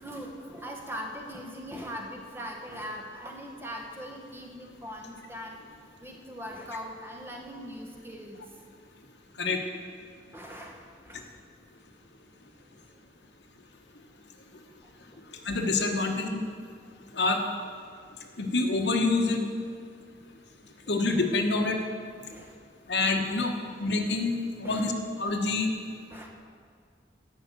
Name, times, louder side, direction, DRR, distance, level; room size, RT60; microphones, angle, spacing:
voice 1, 0.0-8.4 10.3-11.4 12.7-12.9 14.8-15.2 16.0-16.2 21.6-21.8 22.3-22.6 24.6-24.9 26.1-26.3, equal, 15° right, 0 dB, 1.0 m, -41 dB
voice 2, 15.4-16.4 17.1-17.4 18.4-19.5 20.9-21.8 22.9-23.5 23.8-25.7, left 3 dB, 75° left, 4 dB, 1.1 m, -26 dB
11.0 x 5.7 x 7.9 m, 2.1 s
head